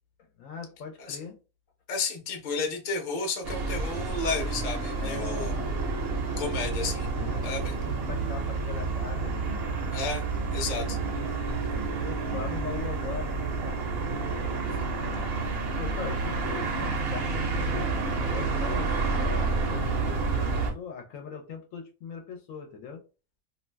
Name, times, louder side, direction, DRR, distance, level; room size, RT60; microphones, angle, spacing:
voice 1, 0.2-1.4 4.9-5.8 7.1-9.5 10.6-13.9 15.5-17.9 18.2-18.9 19.2-23.0, left 6 dB, 75° left, 0.9 m, -41 dB
voice 2, 1.9-5.5 6.4-7.1 7.4-7.7 9.9-10.2 10.5-11.0, left 4 dB, 45° left, 0.7 m, -32 dB
sound 1, 3.4-20.7, right 3 dB, 55° right, 0.8 m, -29 dB
2.5 x 2.2 x 3.2 m
omnidirectional pair, 1.5 m